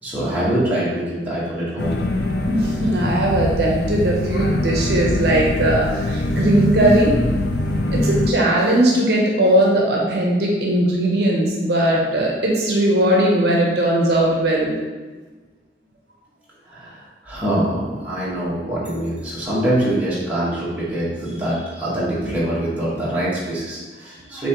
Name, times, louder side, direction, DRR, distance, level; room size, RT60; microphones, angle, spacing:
voice 1, 0.0-2.0 16.7-24.5, right 1 dB, 10° right, -9 dB, 1.2 m, -24 dB
sound 1, 1.8-8.3, left 1 dB, 65° left, 0.5 m, -22 dB
voice 2, 2.5-7.1 7.9-14.7, right 1 dB, 60° right, -2 dB, 0.7 m, -19 dB
7.0 x 2.6 x 2.9 m, 1.3 s
head